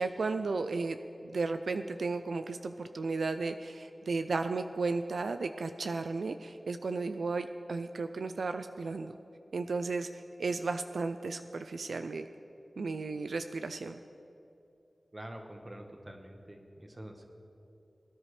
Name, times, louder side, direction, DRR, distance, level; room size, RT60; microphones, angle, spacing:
voice 1, 0.0-9.2 9.5-12.3 12.8-14.0, right 3 dB, 90° right, 8 dB, 0.3 m, -34 dB
voice 2, 15.1-17.3, right 1 dB, 30° right, 4 dB, 1.3 m, -46 dB
20.5 x 10.0 x 3.3 m, 2.8 s
wide cardioid pair, 55°, 0 cm